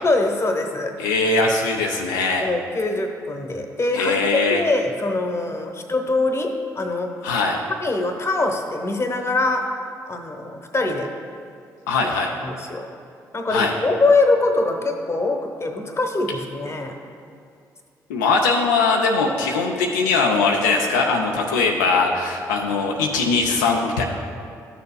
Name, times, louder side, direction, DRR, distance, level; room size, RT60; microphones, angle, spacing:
voice 1, 0.0-1.0 2.4-4.2 4.5-7.1 7.8-9.7 10.1-11.1 12.0-12.1 12.4-12.9 13.3-17.0, left 2 dB, 30° left, 4 dB, 1.0 m, -23 dB
voice 2, 1.0-2.5 3.9-4.6 7.2-7.6 11.9-12.3 13.5-13.7 18.1-24.0, left 3 dB, 80° left, 0 dB, 0.5 m, -21 dB
12.5 x 6.8 x 2.3 m, 2.3 s
figure-of-eight pair, 40°, 9 cm